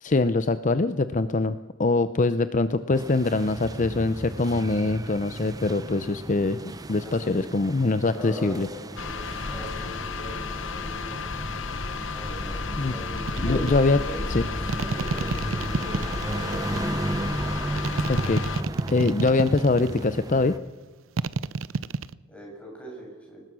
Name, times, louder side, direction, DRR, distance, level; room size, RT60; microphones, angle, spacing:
voice 1, 0.0-6.6 6.9-8.7 12.8-12.9 13.4-14.0 14.3-14.4 18.1-18.4 18.9-20.5, left 3 dB, 40° left, 12 dB, 0.6 m, -23 dB
sound 1, 2.9-20.6, right 1 dB, 20° right, 0.8 m, -35 dB
voice 2, 7.0-7.6 8.1-11.2 12.1-14.2 14.7-17.3 22.3-23.4, equal, 5° left, -2 dB, 7.3 m, -40 dB
sound 2, 9.0-18.6, left 4 dB, 70° left, 1.0 m, -33 dB
sound 3, 13.2-13.8 14.7-16.8 17.8-20.0 21.2-22.1, right 4 dB, 85° right, 0.6 m, -29 dB
22.5 x 19.5 x 6.2 m, 1.3 s
head